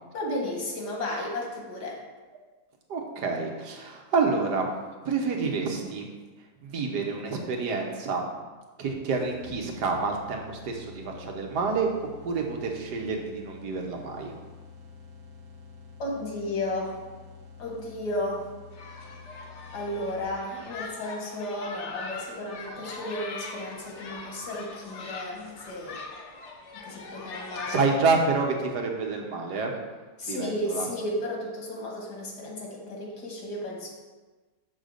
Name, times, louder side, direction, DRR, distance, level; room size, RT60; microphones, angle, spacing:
voice 1, 0.1-2.0 16.0-17.0 17.6-18.5 19.7-26.0 26.7-27.8 30.2-33.9, left 1 dB, 80° left, -2 dB, 2.2 m, -33 dB
voice 2, 2.9-4.6 5.0-6.0 6.6-8.2 8.8-11.9 12.2-14.3 27.7-29.7 30.3-30.9, right 4 dB, 90° right, 2 dB, 1.6 m, -28 dB
sound 1, 9.2-20.6, left 5 dB, 70° right, 1.4 m, -48 dB
sound 2, 18.7-27.9, left 3 dB, 55° left, 1.0 m, -41 dB
6.8 x 3.9 x 6.5 m, 1.3 s
omnidirectional pair, 1.7 m